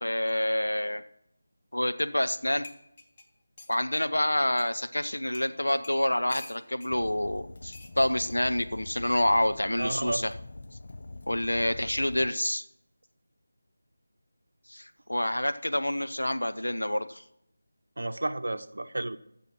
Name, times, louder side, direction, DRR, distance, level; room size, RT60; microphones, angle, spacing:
voice 1, 0.0-1.0 1.7-2.7 3.7-10.3 11.3-12.6 14.7-17.2, left 1 dB, 80° left, 9 dB, 0.8 m, -27 dB
sound 1, 2.3-2.4 2.6-3.8 4.6-4.7 5.3-5.5 5.8-6.9 7.7-7.9 9.1-9.3, left 3 dB, 25° left, 1.0 m, -47 dB
Fire, 6.9-12.3, left 2 dB, 50° left, 0.7 m, -44 dB
voice 2, 9.8-10.3 18.0-19.2, right 2 dB, 60° right, 11 dB, 0.7 m, -32 dB
14.5 x 7.0 x 6.1 m, 0.79 s
figure-of-eight pair, 165°, 0 cm